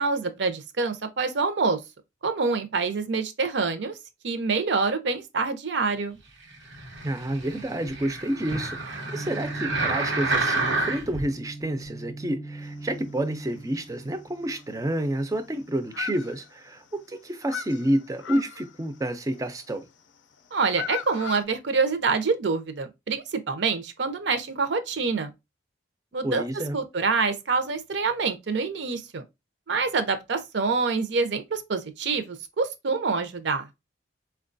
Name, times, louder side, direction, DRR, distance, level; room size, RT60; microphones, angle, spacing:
voice 1, 0.0-1.8 2.2-3.9 4.2-6.2 20.5-25.3 26.1-26.4 26.7-29.2 29.7-33.7, right 4 dB, 70° right, 0.6 m, -26 dB
sound 1, 6.7-11.2 11.8-11.9, right 2 dB, 85° right, 1.1 m, -29 dB
voice 2, 7.0-19.9 26.2-26.8, right 1 dB, 20° right, 0.4 m, -29 dB
sound 2, 9.1-16.0, right 2 dB, 25° left, 0.7 m, -41 dB
sound 3, 12.7-13.3 13.7-13.8 14.1-14.2 14.5-15.5 15.8-16.9 17.2-19.7 20.4-21.4, left 8 dB, 80° left, 0.4 m, -38 dB
4.4 x 2.2 x 2.5 m
head